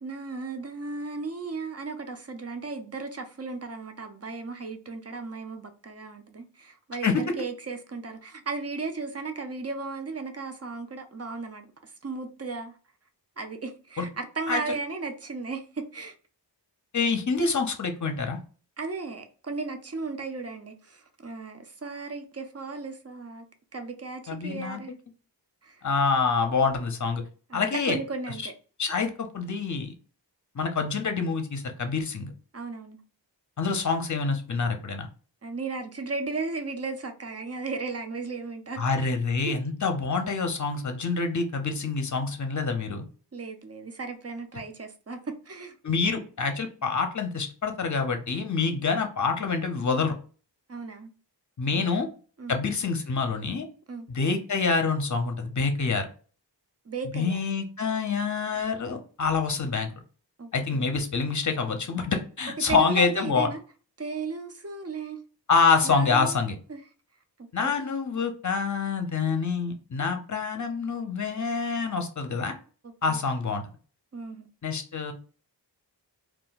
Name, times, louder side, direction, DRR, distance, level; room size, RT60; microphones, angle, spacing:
voice 1, 0.0-12.8 13.4-16.1 18.8-23.5 23.7-24.9 25.6-25.8 27.5-28.5 32.5-33.0 35.4-39.1 39.5-39.6 43.3-45.8 50.7-51.1 51.7-52.0 52.4-52.6 53.9-54.1 56.9-57.4 60.4-60.9 62.7-63.6 64.0-65.2 65.8-66.8 67.4-67.7 72.8-73.2 74.1-74.5, right 4 dB, 35° right, 0.5 m, -35 dB
voice 2, 16.9-18.4 24.3-24.8 25.8-27.2 27.5-28.0 28.8-29.9 30.6-32.3 33.6-35.1 38.8-43.0 45.8-50.1 51.6-52.1 52.5-53.6 54.1-56.1 57.1-59.9 60.5-63.5 65.5-66.6 67.5-72.5 73.0-73.6 74.6-75.1, left 4 dB, 40° left, 0.6 m, -26 dB
2.3 x 2.1 x 3.8 m
wide cardioid pair, 45°, 43 cm